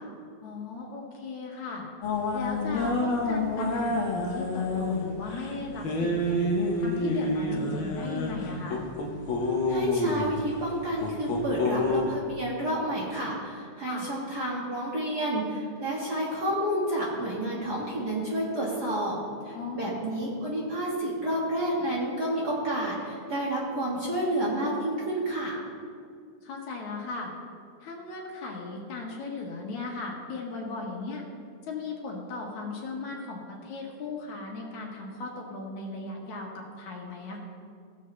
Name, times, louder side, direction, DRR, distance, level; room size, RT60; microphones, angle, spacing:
voice 1, 0.4-1.8 2.3-6.4 6.8-8.8 13.9-14.1 19.5-20.0 26.4-27.3 27.8-31.2 31.6-37.4, left 3 dB, 75° left, -1 dB, 2.8 m, -37 dB
sound 1, 2.0-12.0, left 2 dB, 55° left, 1.5 m, -29 dB
voice 2, 9.7-19.2 19.4-25.6, right 1 dB, 40° right, -5 dB, 1.7 m, -30 dB
16.5 x 7.2 x 3.2 m, 2.2 s
omnidirectional pair, 3.3 m